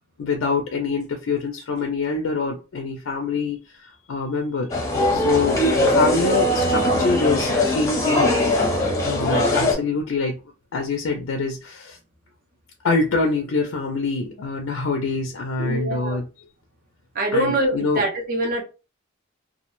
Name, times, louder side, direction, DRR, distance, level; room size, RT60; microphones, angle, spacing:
voice 1, 0.2-4.7 5.1-8.3 9.1-10.4 10.7-12.0 12.8-16.3 17.3-18.1, left 4 dB, 65° left, 0.4 m, -25 dB
sound 1, 4.7-9.7, left 1 dB, 15° left, 0.7 m, -20 dB
voice 2, 15.6-16.2 17.2-18.6, right 1 dB, 40° right, 0.5 m, -24 dB
2.2 x 2.1 x 2.9 m
head